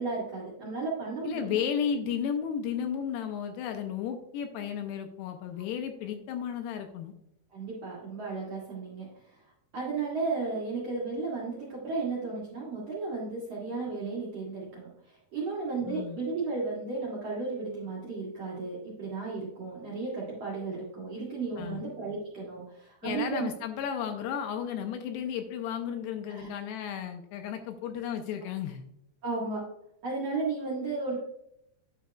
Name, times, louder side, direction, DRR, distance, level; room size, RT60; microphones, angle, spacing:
voice 1, 0.0-1.6 7.5-9.1 9.7-23.5 26.3-26.5 29.2-29.6 30.0-31.2, right 4 dB, 50° right, -6 dB, 2.0 m, -34 dB
voice 2, 1.2-7.1 15.9-16.2 21.6-21.8 23.0-28.8, left 8 dB, 80° left, 6 dB, 2.6 m, -33 dB
10.0 x 6.1 x 2.3 m, 0.76 s
omnidirectional pair, 5.1 m